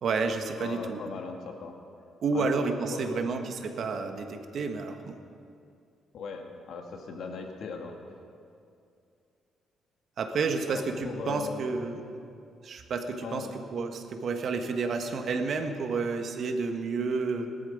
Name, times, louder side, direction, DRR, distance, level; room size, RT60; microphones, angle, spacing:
voice 1, 0.0-1.0 2.2-5.2 10.2-11.9 12.6-17.5, right 4 dB, 60° right, 6 dB, 1.4 m, -30 dB
voice 2, 0.6-1.7 2.3-2.5 2.8-3.3 6.1-7.9 10.7-11.6 13.2-13.5, left 5 dB, 70° left, 3 dB, 1.9 m, -38 dB
18.0 x 13.0 x 5.2 m, 2.4 s
cardioid pair, 90°, 0 cm